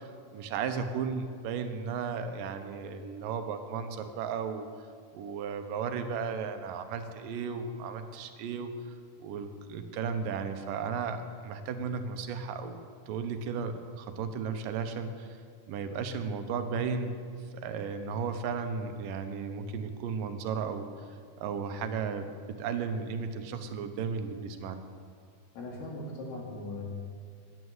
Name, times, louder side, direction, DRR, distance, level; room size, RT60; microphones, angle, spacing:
voice 1, 0.0-4.7 5.1-8.7 9.2-12.8 13.1-15.4 15.7-17.2 17.5-20.9 21.4-24.8, right 6 dB, 85° right, 8 dB, 2.5 m, -35 dB
voice 2, 25.6-26.9, left 2 dB, 85° left, -1 dB, 3.9 m, -39 dB
11.0 x 9.3 x 7.9 m, 2.1 s
omnidirectional pair, 3.8 m